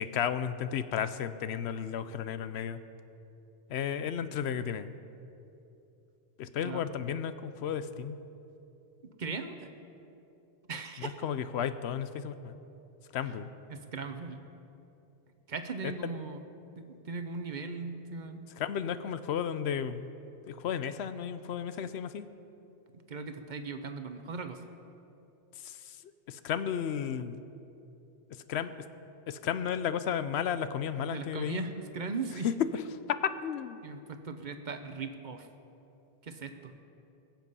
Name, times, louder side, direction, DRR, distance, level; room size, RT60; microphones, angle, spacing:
voice 1, 0.0-2.8 3.7-4.9 6.4-8.2 11.2-12.5 13.1-13.5 18.6-20.1 20.5-22.3 25.6-25.8 26.3-27.4 28.5-28.7 29.3-31.7 32.4-32.8 33.4-33.8, left 8 dB, 85° left, 12 dB, 0.9 m, -33 dB
voice 2, 9.2-9.5 10.7-11.2 13.7-14.4 15.5-16.4 16.8-18.4 23.1-24.6 31.1-32.5 33.8-35.5 36.2-36.7, right 4 dB, 50° right, 8 dB, 0.8 m, -38 dB
21.5 x 7.5 x 5.5 m, 2.9 s
omnidirectional pair, 1.1 m